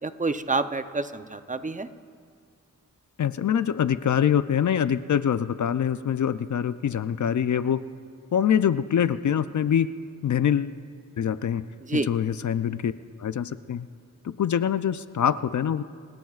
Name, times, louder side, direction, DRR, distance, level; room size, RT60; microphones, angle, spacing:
voice 1, 0.0-1.9 11.8-12.1, right 3 dB, 25° right, 10 dB, 0.6 m, -28 dB
voice 2, 3.2-7.8 8.3-9.9 10.2-10.8 11.2-11.7 11.9-12.9 13.2-13.9 14.2-15.8, left 9 dB, 65° left, 13 dB, 0.5 m, -24 dB
29.5 x 16.5 x 2.4 m, 2.2 s
wide cardioid pair, 100°, 32 cm